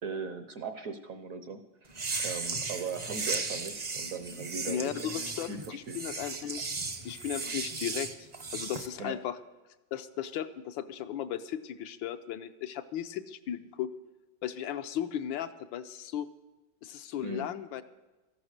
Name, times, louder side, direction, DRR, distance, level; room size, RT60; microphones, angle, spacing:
voice 1, 0.0-5.2 5.5-6.0 9.0-9.2 17.2-17.5, right 5 dB, 60° right, 8 dB, 1.0 m, -39 dB
sound 1, 1.9-8.9, right 3 dB, 35° right, 0.6 m, -36 dB
voice 2, 4.7-6.6 7.0-9.4 9.9-13.9 14.4-16.3 16.8-17.8, left 10 dB, 80° left, 9 dB, 1.4 m, -36 dB
13.5 x 11.5 x 6.5 m, 1.1 s
omnidirectional pair, 2.1 m